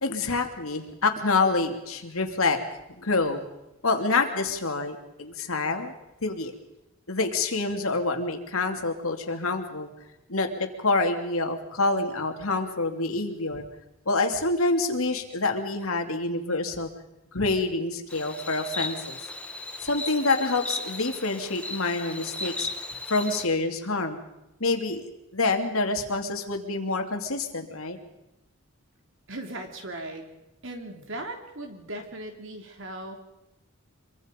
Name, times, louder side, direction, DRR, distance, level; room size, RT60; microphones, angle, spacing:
voice 1, 0.0-2.6 3.0-3.4 3.8-5.9 6.2-6.5 7.1-9.9 10.3-13.7 14.1-16.9 17.3-19.2 19.8-22.7 23.1-24.2 24.6-25.0 25.3-28.0, left 3 dB, 75° left, 4 dB, 2.8 m, -27 dB
Insect, 18.1-23.5, left 2 dB, 5° left, 1.3 m, -36 dB
voice 2, 29.3-30.3 30.6-33.2, right 1 dB, 60° right, 4 dB, 3.4 m, -38 dB
25.5 x 23.5 x 5.3 m, 0.91 s
head